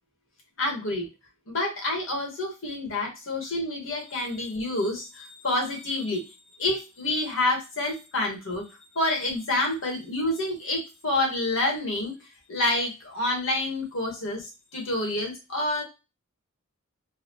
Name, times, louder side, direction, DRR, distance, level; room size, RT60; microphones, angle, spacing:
voice 1, 0.6-1.1 1.5-6.2 6.6-8.6 8.9-12.1 12.5-15.8, left 2 dB, 65° left, 0 dB, 1.4 m, -28 dB
4.0 x 2.3 x 2.9 m, 0.26 s
head